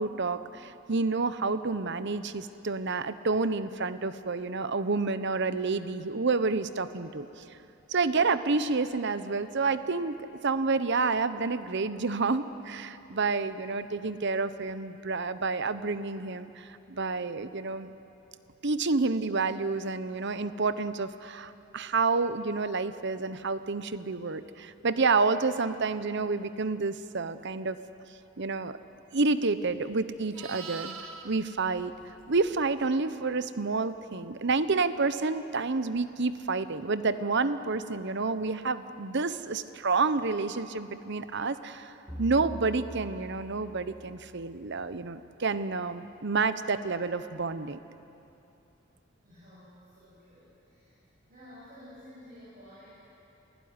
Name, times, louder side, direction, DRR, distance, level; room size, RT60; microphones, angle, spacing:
voice 1, 0.0-7.3 7.9-10.2 10.4-17.9 18.6-27.8 28.4-28.8 29.1-30.9 31.2-31.9 32.3-41.9 42.2-47.8, right 4 dB, 60° right, 12 dB, 0.9 m, -29 dB
Livestock farm animals working animals, 29.6-32.9 37.3-37.5, right 5 dB, 90° right, 1.8 m, -45 dB
sound 1, 42.1-44.8, equal, 15° right, 5.4 m, -44 dB
voice 2, 49.2-51.0 51.3-52.9, equal, 45° right, -10 dB, 8.0 m, -52 dB
28.0 x 17.5 x 9.7 m, 2.8 s
head